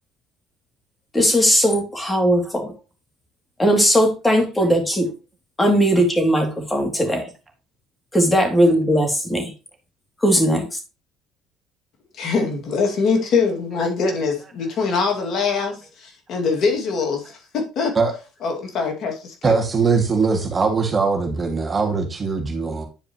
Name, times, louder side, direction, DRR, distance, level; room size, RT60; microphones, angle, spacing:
voice 1, 1.1-2.7 3.6-5.1 5.6-7.2 8.1-9.5 10.2-10.7, equal, 15° left, 2.5 m, -18 dB
voice 2, 12.2-17.9 18.4-19.6, left 4 dB, 60° left, 2.1 m, -23 dB
voice 3, 19.4-22.8, right 4 dB, 30° right, 2.1 m, -21 dB
10.0 x 4.8 x 3.0 m
supercardioid pair, 85°, 0 cm